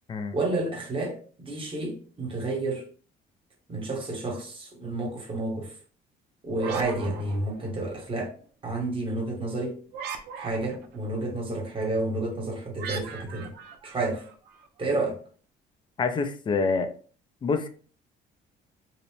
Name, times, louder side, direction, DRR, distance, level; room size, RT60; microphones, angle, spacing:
voice 1, 0.3-2.8 3.7-5.7 6.4-8.3 8.6-9.8 10.4-13.5 13.8-14.2 14.8-15.2, right 2 dB, 30° right, 1.0 m, -30 dB
sound 1, 6.5-8.0 9.9-11.0 12.8-14.7, right 6 dB, 75° right, 0.5 m, -38 dB
voice 2, 16.0-16.9 17.4-17.7, left 4 dB, 30° left, 0.4 m, -26 dB
2.7 x 2.0 x 3.0 m
cardioid pair, 110°, 17 cm